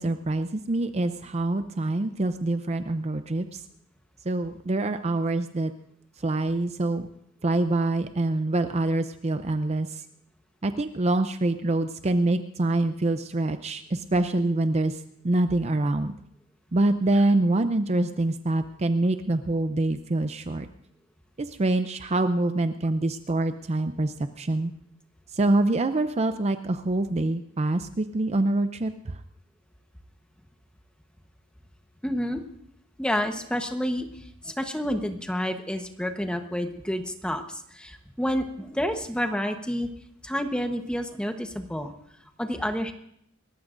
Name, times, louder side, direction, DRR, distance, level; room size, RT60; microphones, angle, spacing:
voice 1, 0.0-3.6 4.2-5.7 6.2-7.1 7.4-10.0 10.6-16.1 16.7-20.7 21.4-24.7 25.3-29.2, right 2 dB, 30° right, 9 dB, 0.5 m, -25 dB
voice 2, 32.0-32.4 33.0-34.1 34.4-39.9 40.2-41.9 42.4-42.9, equal, 5° left, 6 dB, 1.1 m, -29 dB
28.5 x 14.5 x 2.6 m, 0.72 s
head